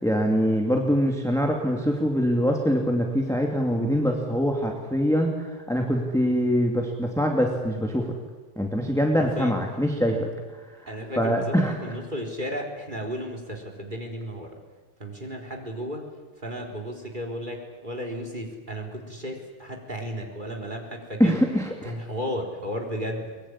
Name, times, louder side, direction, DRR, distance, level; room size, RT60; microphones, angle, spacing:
voice 1, 0.0-5.3 5.7-8.1 8.6-10.3 11.2-11.7 21.2-21.6, equal, ahead, 1 dB, 2.4 m, -23 dB
voice 2, 9.2-9.5 10.9-14.6 15.0-16.0 16.4-21.4 21.8-23.3, equal, 20° right, 3 dB, 4.1 m, -34 dB
23.5 x 22.5 x 9.9 m, 1.4 s
omnidirectional pair, 2.4 m